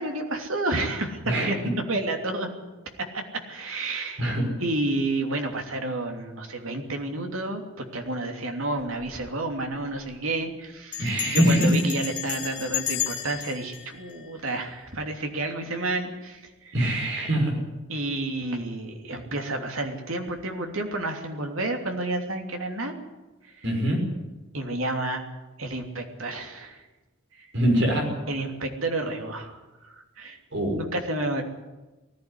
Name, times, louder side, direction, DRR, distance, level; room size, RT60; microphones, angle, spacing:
voice 1, 0.0-1.6 1.9-2.6 3.0-4.3 4.6-16.9 17.9-22.9 24.5-25.2 25.6-26.8 28.3-30.4 30.8-31.4, right 2 dB, 85° right, 3 dB, 3.0 m, -30 dB
Bell, 8.8-9.2 9.4-9.5 9.8-10.1 10.9-15.0, left 11 dB, 25° left, 4.2 m, -33 dB
voice 2, 11.0-11.7 16.7-17.5 23.6-24.0 27.5-28.1 30.5-30.8, right 1 dB, 65° right, 2 dB, 6.2 m, -23 dB
19.5 x 15.0 x 10.0 m, 1.1 s
head